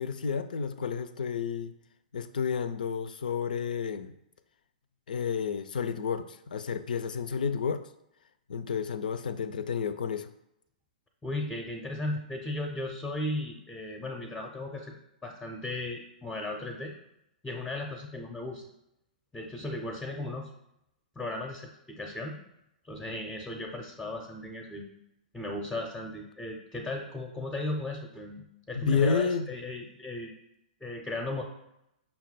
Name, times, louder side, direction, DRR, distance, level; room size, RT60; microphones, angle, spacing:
voice 1, 0.0-1.7 2.1-4.1 5.1-7.9 8.5-10.3 28.7-29.5, left 6 dB, 75° left, 11 dB, 0.3 m, -31 dB
voice 2, 11.2-14.9 15.2-16.9 17.4-18.6 19.3-20.5 21.2-22.4 22.9-24.9 25.3-30.3 30.8-31.4, left 2 dB, 5° left, 1 dB, 0.5 m, -36 dB
5.7 x 2.2 x 4.1 m, 0.83 s
hypercardioid pair, 115°, 5 cm